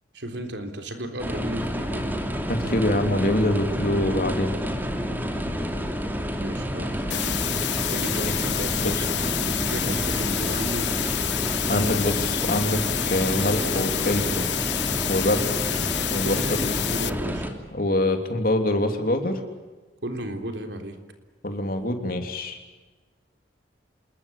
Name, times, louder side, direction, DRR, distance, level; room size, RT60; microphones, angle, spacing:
voice 1, 0.1-2.2 6.4-7.6 7.9-11.0 11.6-12.1 16.2-17.5 20.0-21.0, right 1 dB, 80° right, 6 dB, 3.6 m, -34 dB
sound 1, 1.2-17.5, equal, 10° right, 2.8 m, -29 dB
voice 2, 2.5-4.5 8.2-8.3 8.8-8.9 9.8-9.9 11.7-14.5 15.1-15.8 16.1-16.7 17.7-19.4 21.4-22.6, left 1 dB, 55° left, 6 dB, 3.3 m, -25 dB
sound 2, 7.1-17.1, left 13 dB, 80° left, 1.0 m, -28 dB
28.0 x 21.0 x 8.5 m, 1.3 s
head